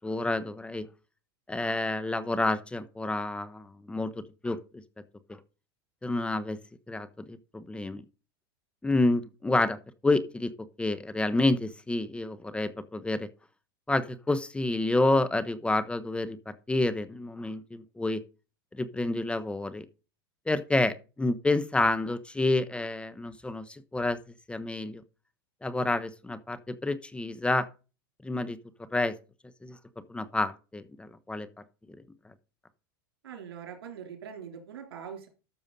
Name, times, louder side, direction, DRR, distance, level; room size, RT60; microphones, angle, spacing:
voice 1, 0.0-0.9 1.5-4.1 4.4-4.6 5.3-5.4 6.0-6.6 6.9-8.0 8.8-9.8 10.0-10.5 10.8-13.3 13.9-18.2 18.7-19.8 20.5-23.7 23.9-24.2 24.5-25.0 25.6-27.6 28.2-28.6 28.9-29.1 29.6-29.8 30.1-31.5, left 2 dB, 10° left, 13 dB, 1.0 m, -29 dB
voice 2, 33.2-35.3, right 7 dB, 85° right, 4 dB, 3.6 m, -42 dB
13.0 x 6.9 x 4.1 m, 0.32 s
hypercardioid pair, 110°, 13 cm